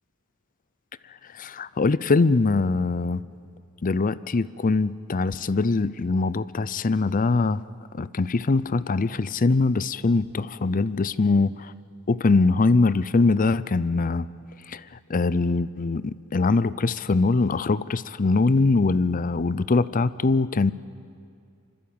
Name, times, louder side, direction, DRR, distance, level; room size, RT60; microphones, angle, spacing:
voice 1, 1.4-3.2 3.8-7.6 7.9-11.5 12.1-14.3 14.7-14.8 15.1-20.7, left 3 dB, 40° left, 18 dB, 0.5 m, -22 dB
25.5 x 25.0 x 8.7 m, 2.4 s
head